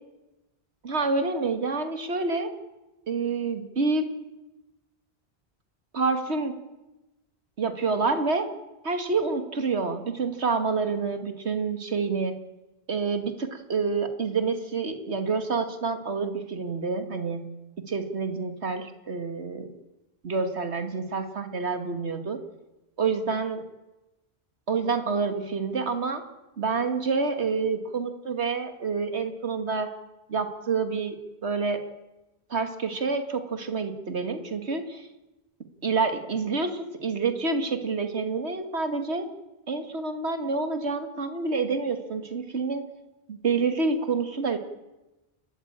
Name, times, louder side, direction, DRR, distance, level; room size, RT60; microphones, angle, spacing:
voice 1, 0.8-2.5 3.1-4.1 5.9-6.6 7.6-8.5 8.8-12.3 12.9-17.4 17.9-19.7 20.2-22.4 23.0-23.6 24.7-26.2 26.6-29.9 30.3-31.8 32.5-35.1 35.8-39.3 39.7-42.9 43.3-44.6, right 4 dB, 85° right, 8 dB, 2.1 m, -28 dB
30.0 x 13.5 x 8.8 m, 1.0 s
omnidirectional pair, 1.1 m